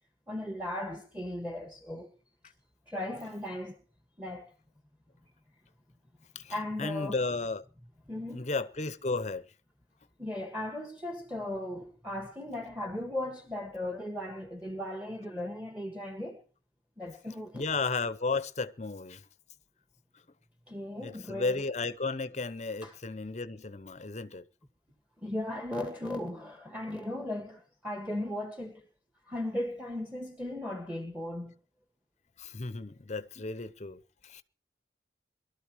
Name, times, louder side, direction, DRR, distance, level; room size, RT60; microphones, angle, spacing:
voice 1, 0.3-2.1 2.9-3.8 4.2-4.5 6.5-7.2 8.1-8.5 10.2-16.4 17.0-17.7 20.7-21.6 22.8-23.0 25.2-28.8 29.3-31.5, left 1 dB, 5° right, 1.7 m, -37 dB
voice 2, 6.3-7.6 8.3-9.5 17.5-19.2 21.0-24.4 32.4-34.4, left 3 dB, 40° left, 0.8 m, -34 dB
22.5 x 13.0 x 3.1 m
head